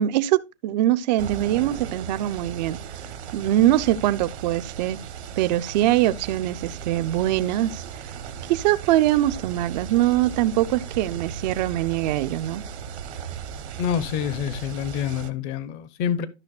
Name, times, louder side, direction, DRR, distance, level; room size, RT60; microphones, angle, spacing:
voice 1, 0.0-2.8 3.3-5.0 5.4-8.1 8.5-12.6, right 13 dB, 40° right, 0.6 m, -23 dB
sound 1, 1.2-15.3, right 7 dB, 65° right, 1.1 m, -37 dB
voice 2, 13.8-16.3, left 8 dB, 30° left, 0.8 m, -27 dB
13.0 x 5.8 x 2.4 m
hypercardioid pair, 125°, 35 cm